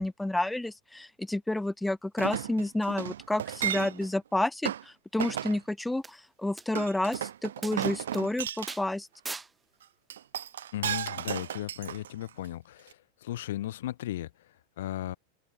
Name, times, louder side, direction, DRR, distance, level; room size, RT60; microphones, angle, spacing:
voice 1, 0.0-9.1, left 1 dB, 5° left, 1.5 m, -30 dB
Chink clink, 2.2-4.1 4.6-4.8 5.2-5.6 6.7-8.8 10.1-12.5 12.9-13.0, right 10 dB, 65° right, 2.0 m, -34 dB
sound 1, 6.0-6.1 6.6-6.7 7.1-7.2 7.6-7.8 8.1-8.2 8.7-8.9 9.3-9.5 10.9-11.0, right 3 dB, 10° right, 2.1 m, -39 dB
voice 2, 10.7-15.2, left 13 dB, 55° left, 1.2 m, -36 dB
open air
figure-of-eight pair, 90°, 0 cm